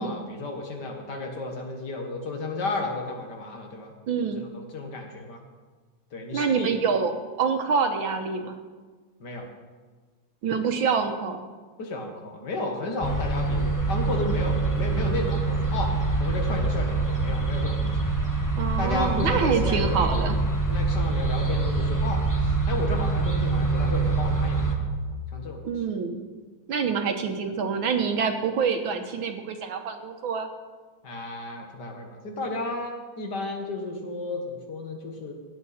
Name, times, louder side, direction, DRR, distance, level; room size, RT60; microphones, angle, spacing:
voice 1, 0.0-3.9 4.5-5.4 6.1-6.7 9.2-9.5 11.8-18.0 18.8-20.1 20.7-24.9 25.3-25.6 31.0-35.3, left 2 dB, 55° left, 2 dB, 2.0 m, -33 dB
voice 2, 4.1-4.4 6.3-7.1 7.4-8.6 10.4-11.4 18.6-20.4 25.6-26.2 26.7-30.5, right 6 dB, 70° right, 6 dB, 1.7 m, -26 dB
sound 1, 13.0-24.7, right 3 dB, 10° left, 0.9 m, -25 dB
16.0 x 9.5 x 4.2 m, 1.4 s
omnidirectional pair, 2.3 m